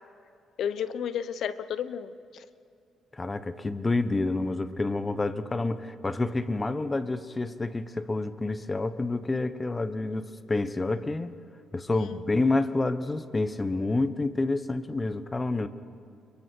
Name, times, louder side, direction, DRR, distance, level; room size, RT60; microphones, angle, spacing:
voice 1, 0.6-2.5 11.9-12.2, left 8 dB, 70° left, 14 dB, 0.9 m, -33 dB
voice 2, 3.1-11.4 11.7-15.7, left 2 dB, 20° left, 12 dB, 1.2 m, -28 dB
29.5 x 23.0 x 4.7 m, 2.6 s
cardioid pair, 90°, 0 cm